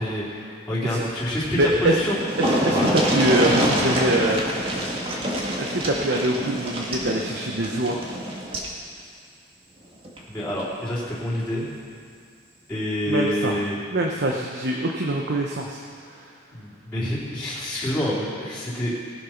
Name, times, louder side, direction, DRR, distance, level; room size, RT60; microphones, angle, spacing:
voice 1, 0.0-2.2 2.7-3.0 10.3-11.7 12.7-13.8 16.5-18.9, left 1 dB, 10° left, -12 dB, 3.5 m, -27 dB
sound 1, 1.6-1.7 1.9-8.7 10.0-10.2 10.6-10.7, equal, 30° right, 1.9 m, -25 dB
voice 2, 1.6-2.0 2.4-4.4 5.6-8.1 13.1-13.6 13.9-16.3, right 1 dB, 55° right, 0 dB, 0.9 m, -24 dB
19.0 x 7.7 x 5.9 m, 2.2 s
head